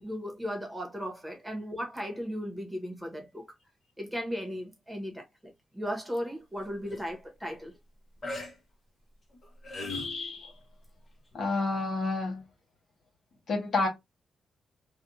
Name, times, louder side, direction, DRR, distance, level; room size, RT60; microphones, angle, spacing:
voice 1, 0.0-3.5 4.0-7.7, equal, 5° right, 1.3 m, -36 dB
sound 1, 6.6-7.0 8.2-8.5 9.3-10.2 11.3-11.4, left 2 dB, 45° left, 1.1 m, -38 dB
voice 2, 9.8-10.5 11.3-12.4 13.5-13.9, left 3 dB, 65° left, 1.5 m, -30 dB
3.4 x 2.4 x 2.7 m
cardioid pair, 100°, 0 cm